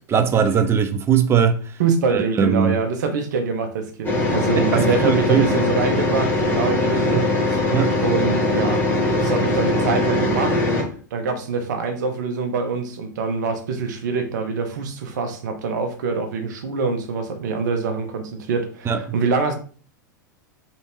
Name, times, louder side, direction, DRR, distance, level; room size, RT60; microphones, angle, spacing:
voice 1, 0.1-1.8 2.1-2.7 4.6-5.5 7.0-7.3 7.7-8.0 18.8-19.0, right 7 dB, 25° right, 0.6 m, -20 dB
voice 2, 1.8-7.6 8.0-8.8 9.1-10.6 11.1-19.5, right 4 dB, 65° right, 1.0 m, -24 dB
sound 1, 4.0-10.8, left 2 dB, 20° left, 1.6 m, -21 dB
3.4 x 2.8 x 4.6 m
hypercardioid pair, 95°, 10 cm